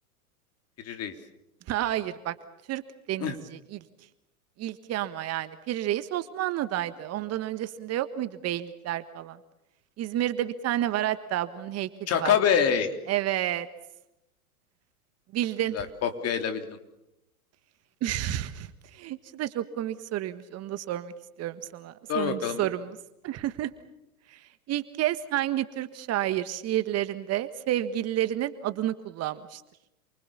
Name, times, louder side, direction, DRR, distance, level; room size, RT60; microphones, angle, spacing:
voice 1, 1.7-2.3 2.7-2.8 3.1-3.8 4.6-9.4 10.0-11.9 12.2-12.3 13.1-13.7 15.3-15.8 18.0-21.1 21.4-22.9 23.2-23.7 24.3-24.4 24.7-29.6, right 13 dB, 35° right, 12 dB, 1.5 m, -30 dB
voice 2, 12.1-12.9 15.7-16.8 22.1-22.7, left 7 dB, 35° left, 7 dB, 3.5 m, -26 dB
28.5 x 25.0 x 7.1 m, 0.88 s
hypercardioid pair, 100°, 44 cm